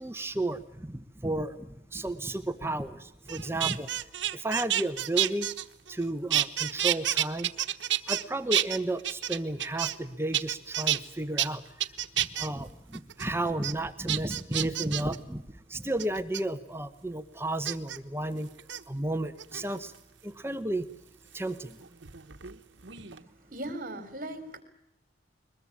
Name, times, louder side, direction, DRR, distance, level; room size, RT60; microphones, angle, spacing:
voice 1, 0.0-1.7 1.9-3.9 4.3-5.5 5.9-7.5 8.1-11.6 12.2-15.4 15.7-18.5 18.9-19.9 20.2-20.8 21.3-21.8, right 1 dB, 15° right, 10 dB, 1.0 m, -32 dB
sound 1, 3.3-6.0 6.3-8.2 8.5-10.1 10.3-11.0 11.4-11.5 11.8-12.5 12.9-13.3 13.6-13.7 14.1-15.2 16.0-16.4 17.6-18.0 18.6-18.8 19.4-20.0 21.4-22.6 22.8-23.2, right 12 dB, 80° right, 1.2 m, -29 dB
voice 2, 23.0-24.6, right 1 dB, 45° right, 10 dB, 3.8 m, -39 dB
22.0 x 21.5 x 8.6 m, 0.82 s
head